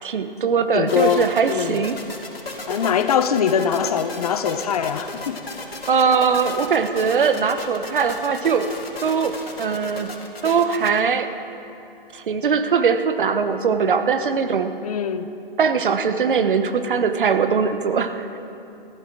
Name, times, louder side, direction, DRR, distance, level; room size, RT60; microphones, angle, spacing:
voice 1, 0.0-2.0 5.9-8.7 9.0-10.1 10.4-11.3 12.1-14.7 15.6-18.3, right 6 dB, 60° right, 9 dB, 1.1 m, -21 dB
voice 2, 0.7-1.8 2.7-5.4 5.7-5.8 14.8-15.3, left 7 dB, 40° left, 11 dB, 0.8 m, -22 dB
sound 1, 0.9-11.0, left 2 dB, 85° left, 2.9 m, -35 dB
15.0 x 14.0 x 6.1 m, 2.8 s
hypercardioid pair, 145°, 29 cm